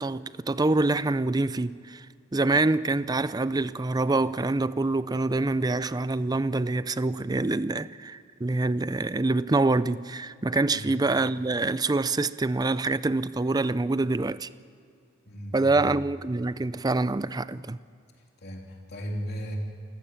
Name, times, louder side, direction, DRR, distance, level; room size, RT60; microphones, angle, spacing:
voice 1, 0.0-2.0 2.3-14.5 15.5-17.8, right 2 dB, 20° right, 0.5 m, -26 dB
voice 2, 15.3-16.0 18.4-19.6, equal, 55° left, 3.3 m, -36 dB
28.5 x 15.5 x 7.3 m
head